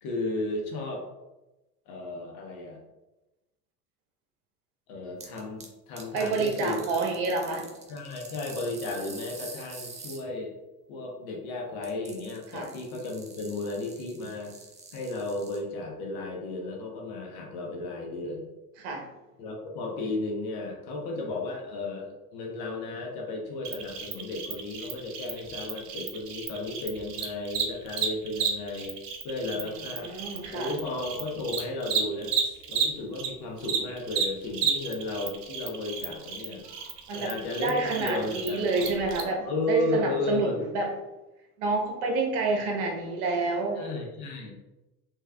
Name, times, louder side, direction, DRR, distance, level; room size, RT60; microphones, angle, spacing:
voice 1, 0.0-1.1 1.9-2.8 4.9-7.1 7.9-10.5 10.9-14.5 14.9-18.5 19.4-29.0 29.2-30.1 30.5-32.3 32.7-36.6 37.1-38.7 39.4-40.6 43.7-44.5, left 2 dB, 55° left, 0 dB, 1.0 m, -34 dB
sound 1, 5.2-5.7 6.0-10.2 11.8-15.6, right 4 dB, 15° right, 0.5 m, -45 dB
voice 2, 6.1-7.7 12.5-12.7 18.8-19.1 29.5-30.7 37.1-37.3 37.6-40.9 41.6-43.8, right 3 dB, 65° right, 1 dB, 1.0 m, -28 dB
Cricket, 23.6-33.3 33.6-39.2, right 7 dB, 85° right, 0.7 m, -32 dB
3.3 x 3.2 x 2.2 m, 1.0 s
hypercardioid pair, 80°, 46 cm